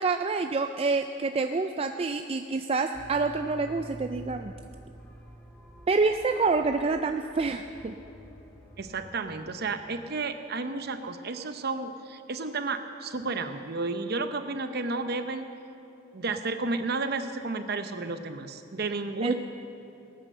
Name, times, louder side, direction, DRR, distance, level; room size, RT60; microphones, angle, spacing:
voice 1, 0.0-4.5 5.9-8.0 19.2-19.3, right 4 dB, 30° right, 7 dB, 0.4 m, -27 dB
sound 1, 2.9-9.5, right 1 dB, 10° left, 1.2 m, -48 dB
voice 2, 8.8-15.5 16.1-19.3, right 3 dB, 50° right, 8 dB, 0.8 m, -32 dB
18.0 x 9.6 x 6.6 m, 2.9 s
head